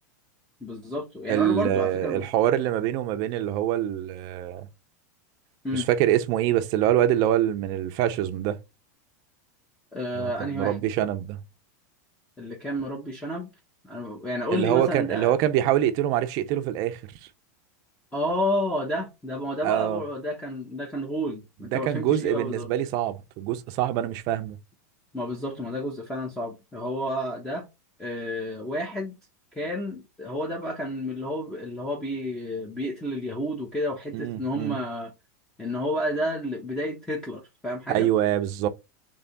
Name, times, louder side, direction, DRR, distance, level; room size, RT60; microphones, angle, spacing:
voice 1, 0.6-2.3 5.6-5.9 9.9-10.8 12.4-13.5 13.8-15.3 18.1-22.7 25.1-27.7 28.0-29.2 29.5-35.1 35.6-38.1, equal, 5° left, 1.0 m, -30 dB
voice 2, 1.3-4.7 5.7-8.6 10.2-11.4 14.5-17.0 19.6-20.0 21.7-24.6 34.1-34.8 37.9-38.7, right 11 dB, 45° right, 0.6 m, -25 dB
3.4 x 3.4 x 3.9 m
supercardioid pair, 145°, 9 cm